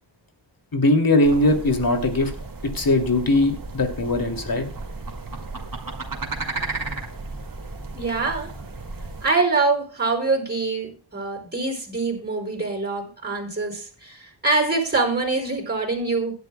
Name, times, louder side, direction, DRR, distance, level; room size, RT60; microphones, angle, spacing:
voice 1, 0.7-2.3 2.6-4.6, left 2 dB, 55° left, 4 dB, 2.6 m, -20 dB
sound 1, 1.2-9.3, right 3 dB, 50° right, 2.1 m, -34 dB
voice 2, 7.9-8.5 9.2-16.3, right 3 dB, 25° right, 2 dB, 5.2 m, -24 dB
17.5 x 10.5 x 2.2 m, 0.38 s
cardioid pair, 60°, 43 cm